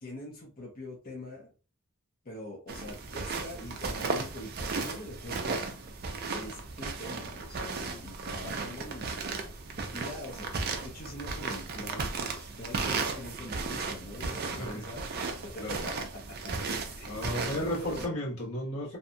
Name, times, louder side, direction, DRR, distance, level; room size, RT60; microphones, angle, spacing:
voice 1, 0.0-1.5 2.2-5.7 6.3-9.2 9.9-15.1 15.4-16.4 17.0-17.2 17.7-18.2, left 1 dB, 40° left, 0.6 m, -43 dB
sound 1, 2.7-18.1, right 4 dB, 45° right, 0.4 m, -35 dB
voice 2, 14.5-14.9 15.6-15.9 17.1-19.0, left 1 dB, 70° left, 1.2 m, -34 dB
2.7 x 2.2 x 2.6 m
head